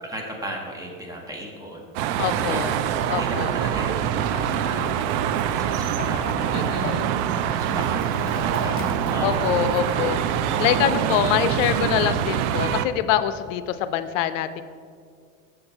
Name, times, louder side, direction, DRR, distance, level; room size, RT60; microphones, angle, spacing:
voice 1, 0.0-1.8 2.3-6.6 7.0-10.1 10.4-11.2 12.6-12.8, equal, 10° right, 0 dB, 0.9 m, -37 dB
sound 1, 1.9-12.8, right 9 dB, 65° right, 0.5 m, -24 dB
voice 2, 2.2-2.7 3.1-3.5 6.5-7.1 9.2-10.2 10.6-14.6, left 11 dB, 75° left, 12 dB, 0.5 m, -24 dB
Chicken rooster, 4.2-11.0, left 5 dB, 25° left, 0.5 m, -39 dB
6.7 x 4.5 x 5.4 m, 2.2 s
supercardioid pair, 140°, 38 cm